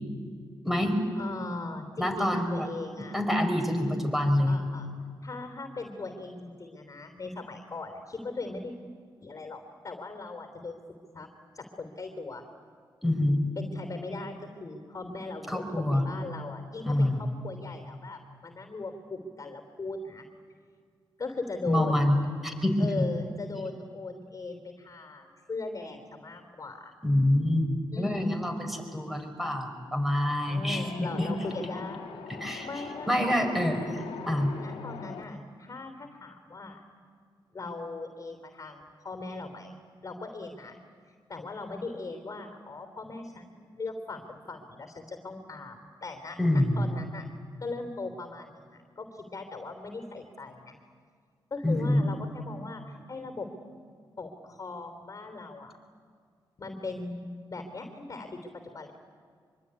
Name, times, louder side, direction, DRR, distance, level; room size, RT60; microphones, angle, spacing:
voice 1, 0.6-1.0 2.0-2.7 3.0-4.6 13.0-13.4 15.5-16.1 16.8-17.2 21.7-22.2 22.4-23.0 27.0-31.3 32.4-32.7 33.1-34.0 34.3-34.6 46.4-46.8 51.6-52.1, left 1 dB, ahead, 5 dB, 5.1 m, -26 dB
voice 2, 1.2-3.2 4.4-4.9 5.2-8.7 9.2-11.3 11.5-12.4 13.6-14.3 14.6-20.3 21.2-22.1 22.8-26.9 27.9-28.4 30.4-34.0 34.6-36.8 37.5-40.8 41.1-47.3 47.6-50.7 51.5-53.5 54.2-55.7 56.6-58.9, left 3 dB, 40° left, 6 dB, 3.3 m, -39 dB
Wind, 30.7-35.2, left 6 dB, 90° left, 2.3 m, -42 dB
25.0 x 24.0 x 9.7 m, 2.1 s
cardioid pair, 90°, 9 cm